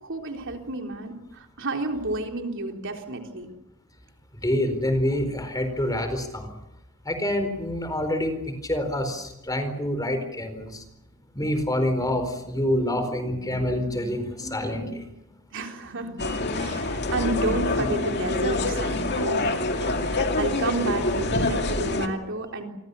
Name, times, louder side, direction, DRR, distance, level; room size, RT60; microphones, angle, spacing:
voice 1, 0.0-3.5 15.5-16.3 16.6-22.6, right 2 dB, 60° right, 3 dB, 3.8 m, -31 dB
voice 2, 4.4-6.5 7.0-8.4 8.6-10.8 11.3-15.0 17.4-17.9 19.0-19.1, left 1 dB, 15° left, 8 dB, 4.4 m, -27 dB
sound 1, 16.2-22.1, left 2 dB, 50° left, 2.4 m, -26 dB
28.5 x 24.0 x 7.0 m, 0.89 s
head